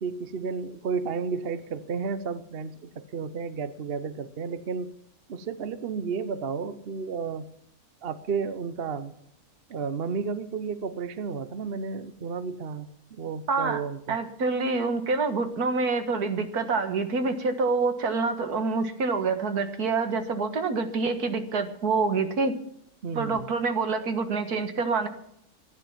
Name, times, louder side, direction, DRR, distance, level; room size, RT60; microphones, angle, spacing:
voice 1, 0.0-4.9 5.3-7.5 8.0-9.1 9.7-12.9 13.2-14.2 23.0-23.5, right 5 dB, 45° right, 13 dB, 1.0 m, -32 dB
voice 2, 13.5-13.8 14.1-22.6 23.1-25.1, right 4 dB, 80° right, 8 dB, 2.0 m, -26 dB
14.5 x 10.0 x 7.4 m, 0.73 s
omnidirectional pair, 1.6 m